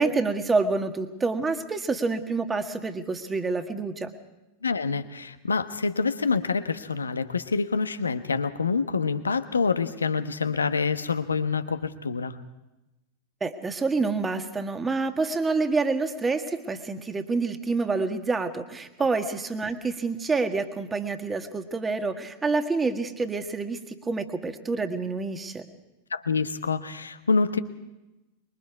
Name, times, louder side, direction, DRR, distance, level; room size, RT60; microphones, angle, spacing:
voice 1, 0.0-4.1 13.4-25.7, right 3 dB, 15° right, 7 dB, 1.7 m, -27 dB
voice 2, 4.6-12.4 26.1-27.6, left 4 dB, 75° left, 11 dB, 1.1 m, -26 dB
25.5 x 22.5 x 4.8 m, 1.0 s
figure-of-eight pair, 90°, 0 cm